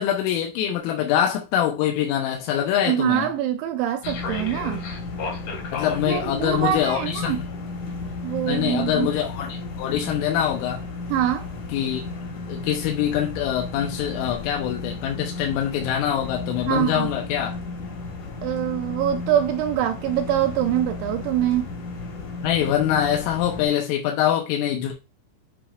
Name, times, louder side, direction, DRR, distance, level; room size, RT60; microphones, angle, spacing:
voice 1, 0.0-3.3 5.7-7.5 8.5-10.8 11.7-12.0 12.5-17.6 22.4-24.9, left 10 dB, 85° left, 3.6 m, -24 dB
voice 2, 2.9-4.8 6.1-7.4 8.2-9.1 11.1-11.5 16.7-17.1 18.4-21.7, right 11 dB, 80° right, 2.7 m, -24 dB
sound 1, 4.0-23.7, left 3 dB, 60° left, 2.1 m, -33 dB
9.0 x 4.4 x 2.5 m
omnidirectional pair, 5.7 m